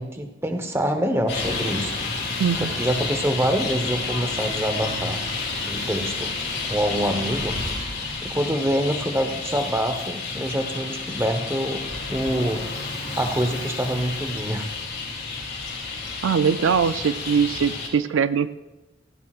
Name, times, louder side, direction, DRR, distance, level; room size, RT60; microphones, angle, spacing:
voice 1, 0.0-1.9 2.6-5.2 5.6-6.3 6.6-7.6 8.2-11.8 12.1-12.7 13.2-14.7, equal, 15° right, 6 dB, 0.9 m, -25 dB
Traffic noise roadway noise, 1.3-17.9, left 3 dB, 60° left, 2.8 m, -30 dB
voice 2, 2.4-2.7 16.2-18.6, right 6 dB, 80° right, 13 dB, 0.4 m, -22 dB
16.0 x 16.0 x 2.4 m, 1.0 s
head